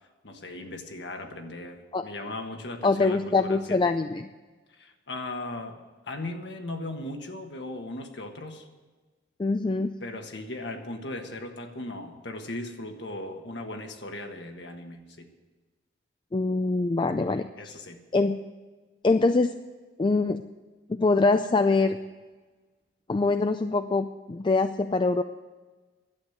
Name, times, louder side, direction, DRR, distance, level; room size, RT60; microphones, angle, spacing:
voice 1, 0.2-3.8 4.8-5.8 6.1-8.7 10.0-15.3 16.9-17.0 17.6-18.0, left 2 dB, 70° left, 4 dB, 1.5 m, -38 dB
voice 2, 2.8-4.3 9.4-9.9 16.3-17.5 18.1-18.4 19.0-19.5 20.0-20.4 20.9-22.0 23.1-25.2, left 3 dB, 25° left, 9 dB, 0.4 m, -24 dB
11.5 x 8.2 x 9.3 m, 1.3 s
head